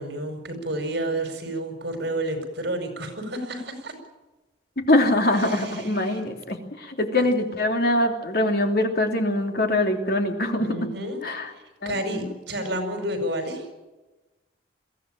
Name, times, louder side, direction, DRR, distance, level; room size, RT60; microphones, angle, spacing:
voice 1, 0.0-4.0 5.5-6.2 10.6-11.2 11.5-13.7, right 1 dB, 65° right, 6 dB, 5.2 m, -30 dB
voice 2, 4.9-10.7 11.2-11.5 11.8-12.4, left 1 dB, 55° left, 4 dB, 3.0 m, -23 dB
22.5 x 15.5 x 9.0 m, 1.1 s
head